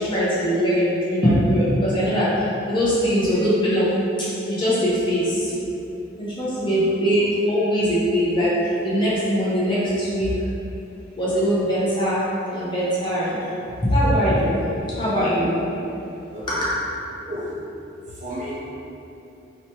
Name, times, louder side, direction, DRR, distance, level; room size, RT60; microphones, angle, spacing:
voice 1, 0.0-3.9 4.5-5.5 6.2-8.5 8.8-10.4 11.2-12.2 12.5-13.5 13.8-14.6 15.0-15.6 16.5-16.7, equal, 25° left, -10 dB, 0.6 m, -21 dB
voice 2, 6.6-7.0 16.3-16.6 17.3-17.6 18.1-18.5, equal, 40° right, -8 dB, 0.6 m, -33 dB
3.0 x 2.1 x 2.8 m, 2.9 s
head